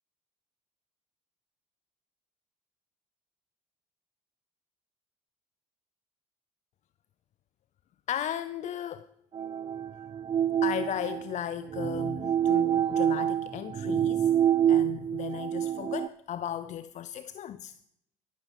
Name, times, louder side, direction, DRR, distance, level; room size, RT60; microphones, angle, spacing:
voice 1, 8.1-9.1 10.6-14.3 14.7-17.8, left 10 dB, 50° left, 0.6 m, -36 dB
sound 1, 9.3-16.1, right 10 dB, 35° right, 0.5 m, -27 dB
13.0 x 11.5 x 5.4 m
hypercardioid pair, 65°, 16 cm